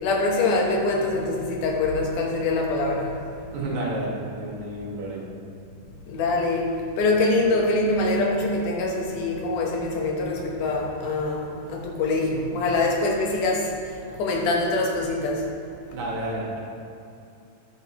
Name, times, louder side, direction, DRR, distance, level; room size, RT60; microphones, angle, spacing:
voice 1, 0.0-3.2 6.1-15.5, left 2 dB, 75° left, 0 dB, 2.6 m, -24 dB
voice 2, 3.5-5.3 15.9-16.6, right 1 dB, 65° right, -4 dB, 2.8 m, -30 dB
9.8 x 9.3 x 3.0 m, 2.7 s
omnidirectional pair, 3.7 m